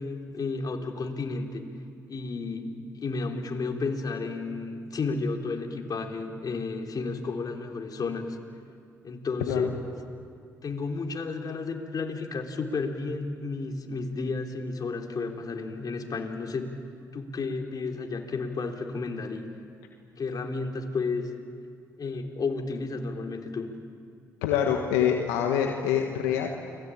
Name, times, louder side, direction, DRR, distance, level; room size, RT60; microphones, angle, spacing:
voice 1, 0.0-1.7 2.1-8.4 9.0-9.7 10.6-16.7 17.1-19.5 20.2-21.3 22.0-23.7, left 4 dB, 50° left, 2 dB, 3.7 m, -32 dB
voice 2, 24.4-26.5, left 9 dB, 90° left, 2 dB, 1.5 m, -25 dB
29.5 x 21.5 x 8.8 m, 2.3 s
hypercardioid pair, 50°, 8 cm